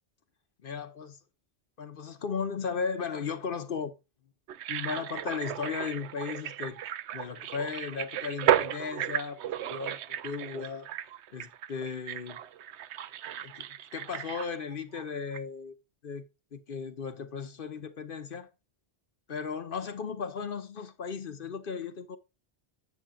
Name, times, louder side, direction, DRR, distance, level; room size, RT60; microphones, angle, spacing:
voice 1, 0.6-1.2 1.8-3.9 4.7-6.8 7.1-10.9 11.3-12.4 13.4-15.7 16.0-16.2 16.5-18.5 19.3-22.2, left 5 dB, 55° left, 1.1 m, -36 dB
sound 1, 4.5-15.0 15.3-15.4, right 11 dB, 80° right, 0.9 m, -34 dB
9.6 x 8.8 x 2.4 m
omnidirectional pair, 1.1 m